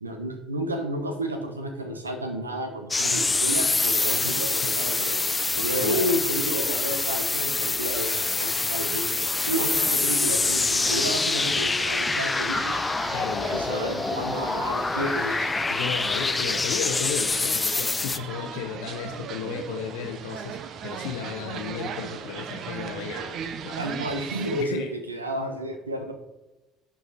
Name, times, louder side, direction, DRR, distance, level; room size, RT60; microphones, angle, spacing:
voice 1, 0.0-5.2 5.6-9.1 9.5-12.9 13.5-15.5 23.8-26.1, right 1 dB, 90° right, 5 dB, 1.1 m, -31 dB
sound 1, 2.9-18.2, left 3 dB, 20° left, 0.5 m, -26 dB
voice 2, 5.6-6.1 13.1-13.6 15.7-23.4 23.6-23.8 24.6-24.9, left 8 dB, 70° left, 4 dB, 0.8 m, -34 dB
sound 2, 10.8-24.6, right 7 dB, 50° right, 0.9 m, -37 dB
11.5 x 6.1 x 4.2 m, 1.0 s
figure-of-eight pair, 55°, 0 cm